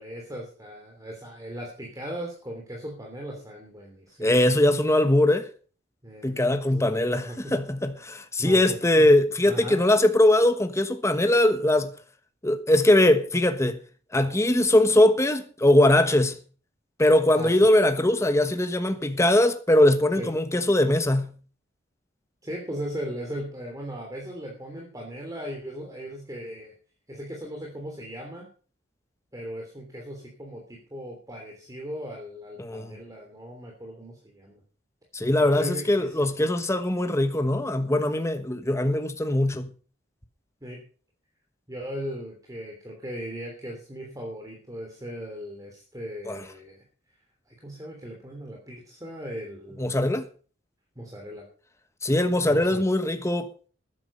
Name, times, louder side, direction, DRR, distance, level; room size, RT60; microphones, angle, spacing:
voice 1, 0.0-4.3 6.0-7.5 8.4-9.1 9.4-9.8 17.3-17.7 20.2-20.3 22.4-26.7 27.1-28.4 29.3-34.6 35.4-36.2 40.6-40.8 41.7-46.8 47.5-50.0 50.9-51.4 52.4-52.8, equal, 20° right, 3.2 m, -38 dB
voice 2, 4.2-5.5 6.2-11.9 12.4-13.8 14.1-16.4 17.0-21.3 32.6-33.0 35.1-39.7 46.2-46.4 49.8-50.2 52.0-53.5, left 1 dB, 15° left, 1.1 m, -21 dB
13.0 x 10.5 x 5.5 m
head